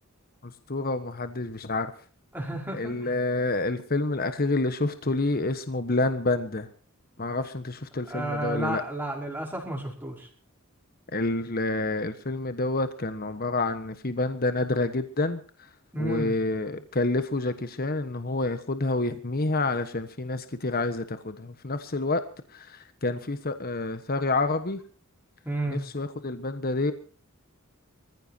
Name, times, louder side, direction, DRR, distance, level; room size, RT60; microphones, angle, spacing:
voice 1, 0.4-1.9 2.7-6.7 7.2-8.8 11.1-15.4 16.0-22.2 22.5-24.8 25.7-26.9, left 2 dB, 45° left, 9 dB, 1.3 m, -28 dB
voice 2, 2.3-3.1 8.1-10.3 15.9-16.3 25.4-25.8, right 1 dB, 10° right, 0 dB, 5.3 m, -32 dB
25.0 x 15.0 x 2.9 m, 0.41 s
head